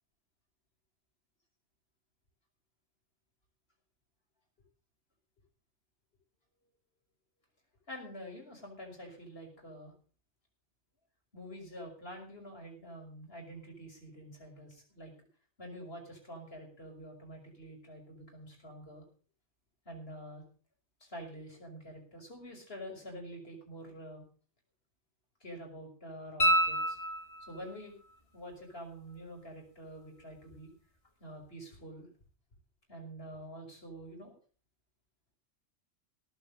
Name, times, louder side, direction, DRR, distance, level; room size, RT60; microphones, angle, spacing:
voice 1, 7.9-9.9 11.3-15.1 15.6-19.0 19.9-20.4 21.0-24.2 25.4-27.0 27.5-28.0 28.3-30.7 31.2-32.1 32.9-34.3, equal, 50° left, 1 dB, 6.1 m, -47 dB
sound 1, 26.4-27.7 30.5-30.6, right 1 dB, 25° left, 2.2 m, -28 dB
17.5 x 8.4 x 6.7 m, 0.41 s
omnidirectional pair, 1.3 m